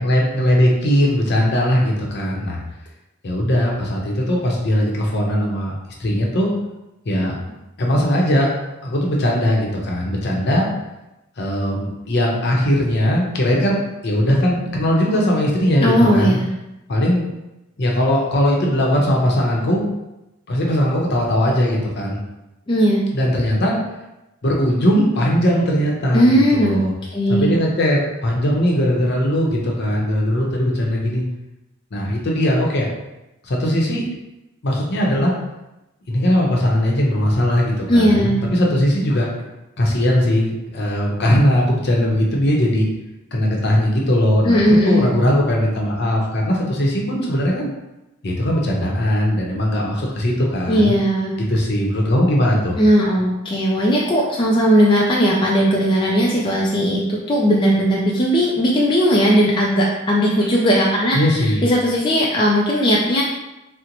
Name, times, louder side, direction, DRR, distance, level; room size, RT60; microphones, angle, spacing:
voice 1, 0.0-2.6 3.2-5.7 6.0-6.5 7.1-7.4 7.8-8.5 8.8-10.7 11.4-16.4 16.9-17.3 17.8-19.8 20.5-22.2 23.1-23.8 24.4-26.9 27.3-31.2 31.9-32.9 33.4-34.0 34.6-35.3 36.1-39.3 39.8-42.9 43.3-47.7 48.2-50.9 51.5-52.8 61.1-61.6, equal, 55° left, -2 dB, 0.7 m, -19 dB
voice 2, 15.8-16.5 22.7-23.0 26.1-26.8 27.1-27.5 37.9-38.4 44.4-45.1 50.7-51.3 52.8-63.2, equal, 25° left, -4 dB, 0.3 m, -17 dB
3.8 x 2.0 x 2.9 m, 0.96 s
head